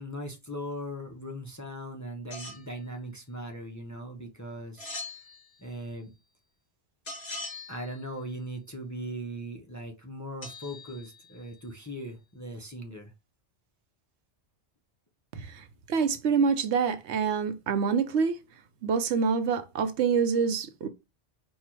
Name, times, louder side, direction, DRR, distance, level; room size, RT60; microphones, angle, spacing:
voice 1, 0.0-4.9 5.6-6.1 7.7-13.1, equal, 20° left, 0.6 m, -39 dB
sound 1, 2.3-2.7 4.8-5.8 7.0-8.1 10.4-11.6, left 2 dB, 60° left, 2.1 m, -42 dB
voice 2, 15.3-18.4 18.8-20.9, right 6 dB, 75° right, 0.9 m, -26 dB
4.5 x 2.4 x 4.4 m
omnidirectional pair, 1.2 m